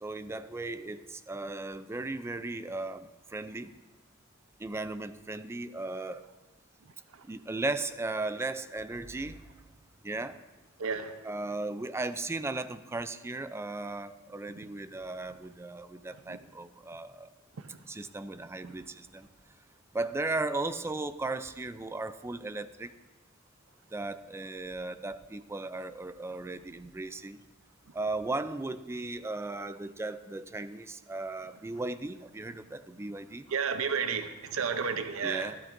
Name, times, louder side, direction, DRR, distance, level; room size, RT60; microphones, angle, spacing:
voice 1, 0.0-3.7 4.6-6.2 7.3-9.4 10.0-10.4 11.2-17.3 17.9-19.3 19.9-22.9 23.9-27.4 27.9-33.5 35.2-35.6, right 2 dB, 15° right, 12 dB, 0.3 m, -36 dB
voice 2, 10.8-11.1 16.3-16.4 33.5-35.5, right 6 dB, 80° right, 9 dB, 0.6 m, -31 dB
13.0 x 12.0 x 2.6 m, 1.2 s
head